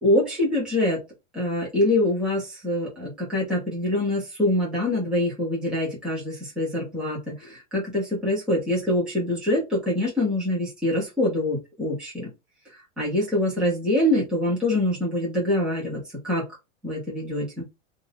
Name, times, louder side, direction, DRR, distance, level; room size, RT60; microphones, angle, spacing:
voice 1, 0.0-1.0 1.3-12.3 13.0-16.4 16.8-17.7, left 1 dB, ahead, -6 dB, 0.6 m, -25 dB
2.6 x 2.4 x 3.2 m, 0.24 s
supercardioid pair, 180°, 40 cm